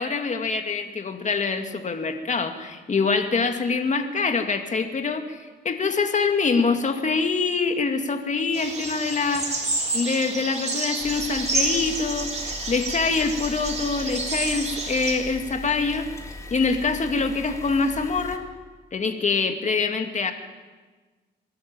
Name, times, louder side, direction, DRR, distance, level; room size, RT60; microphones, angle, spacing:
voice 1, 0.0-9.7 9.9-16.1 16.5-18.5 18.9-20.3, left 4 dB, 40° left, 6 dB, 2.4 m, -25 dB
sound 1, 8.5-15.1, right 3 dB, 35° right, 4.6 m, -29 dB
sound 2, 11.0-18.4, left 2 dB, 15° left, 2.5 m, -39 dB
23.0 x 13.0 x 8.8 m, 1.3 s
cardioid pair, 90°, 20 cm